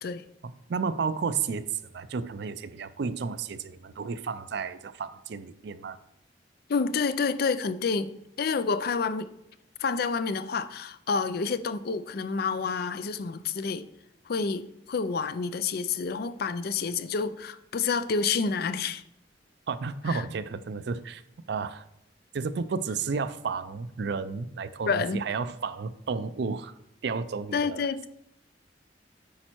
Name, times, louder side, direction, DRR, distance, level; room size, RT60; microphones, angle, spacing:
voice 1, 0.4-6.0 19.7-21.2 21.5-21.8 22.3-26.7 27.0-28.1, right 5 dB, 65° right, 0.4 m, -32 dB
voice 2, 6.7-9.3 9.8-13.8 14.3-19.0 20.1-20.2 24.9-25.3 27.5-28.1, left 5 dB, 55° left, 0.5 m, -29 dB
8.6 x 5.4 x 4.5 m
head